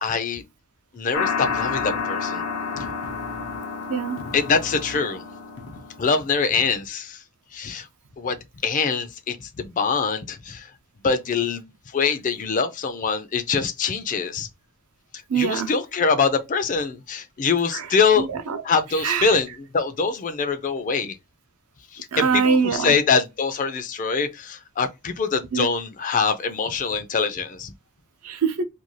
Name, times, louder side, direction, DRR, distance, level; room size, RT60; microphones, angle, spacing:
voice 1, 0.0-0.4 0.9-2.4 4.3-5.2 6.0-7.2 7.5-7.9 8.2-10.7 11.0-14.5 15.3-18.3 18.6-21.2 21.9-27.7, left 5 dB, 35° left, 0.4 m, -24 dB
sound 1, 1.1-6.4, left 5 dB, 90° left, 0.6 m, -30 dB
voice 2, 3.9-4.2 15.3-15.7 17.7-17.9 18.2-18.6 19.0-19.4 22.1-22.9 25.5-25.7 28.2-28.6, right 6 dB, 75° right, 0.5 m, -23 dB
2.6 x 2.3 x 2.9 m
head